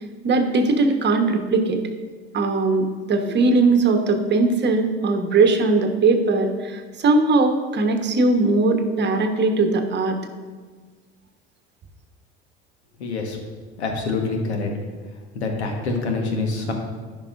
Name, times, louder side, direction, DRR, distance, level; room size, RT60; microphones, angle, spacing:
voice 1, 0.2-1.8 2.3-10.2, right 3 dB, 30° right, 5 dB, 1.2 m, -19 dB
voice 2, 13.0-13.4 13.8-14.7 15.3-16.7, left 3 dB, 80° left, 3 dB, 1.4 m, -25 dB
14.5 x 5.6 x 2.6 m, 1.4 s
figure-of-eight pair, 65°, 33 cm